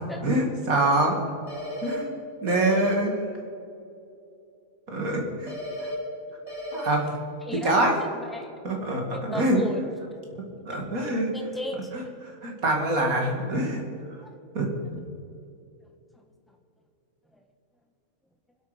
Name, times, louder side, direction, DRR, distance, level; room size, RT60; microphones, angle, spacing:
voice 1, 0.2-1.2 1.8-2.1 2.4-3.2 4.9-5.5 5.8-5.9 6.7-7.1 7.6-7.9 8.6-9.6 10.6-11.3 11.9-12.0 12.4-13.8 14.5-14.7, right 1 dB, 70° right, 1 dB, 2.8 m, -25 dB
sound 1, 1.5-1.9 2.5-2.9 5.5-5.9 6.5-6.9, equal, 20° left, 4.2 m, -34 dB
voice 2, 7.4-8.6 9.1-9.9 11.3-12.1 14.2-14.3 16.1-16.2 17.3-17.4, left 1 dB, ahead, 3 dB, 1.3 m, -36 dB
24.5 x 8.5 x 5.1 m, 2.6 s
omnidirectional pair, 1.5 m